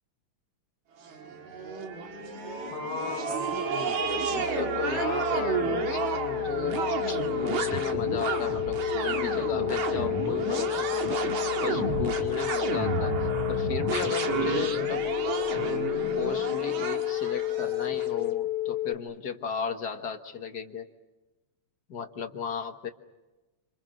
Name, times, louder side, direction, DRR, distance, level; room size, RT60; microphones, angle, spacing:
sound 1, 1.0-18.1, right 5 dB, 70° right, 3.4 m, -31 dB
sound 2, 1.9-18.9, left 15 dB, 75° left, 2.5 m, -31 dB
voice 1, 2.7-11.2 11.6-15.1 16.2-20.9 21.9-22.9, left 6 dB, 45° left, 6 dB, 1.5 m, -35 dB
28.0 x 27.5 x 6.5 m, 1.1 s
omnidirectional pair, 3.4 m